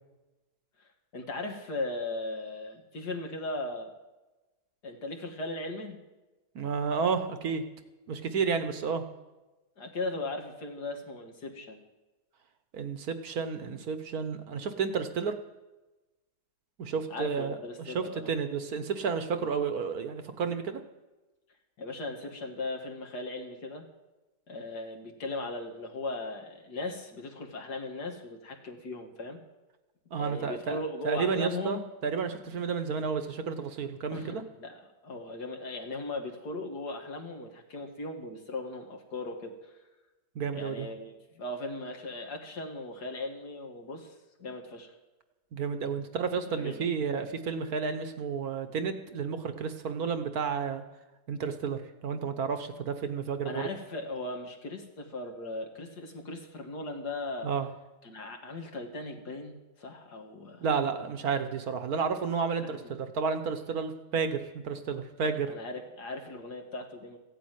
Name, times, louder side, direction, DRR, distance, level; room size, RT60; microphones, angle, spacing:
voice 1, 1.1-3.9 4.8-6.0 9.8-11.8 17.1-18.3 21.8-23.8 24.5-29.4 30.2-31.8 34.1-34.8 35.0-39.5 40.5-44.1 44.4-44.9 46.5-46.8 53.4-57.5 58.0-60.7 62.6-62.8 65.2-67.2, left 2 dB, 70° left, 3 dB, 2.6 m, -38 dB
voice 2, 6.5-7.6 8.1-9.0 12.7-15.3 16.8-20.8 30.1-30.8 31.0-34.4 40.3-40.9 45.5-50.8 51.3-53.7 57.4-57.7 60.6-65.5, right 5 dB, 60° right, 9 dB, 1.5 m, -31 dB
15.5 x 8.5 x 9.2 m, 1.1 s
omnidirectional pair, 1.8 m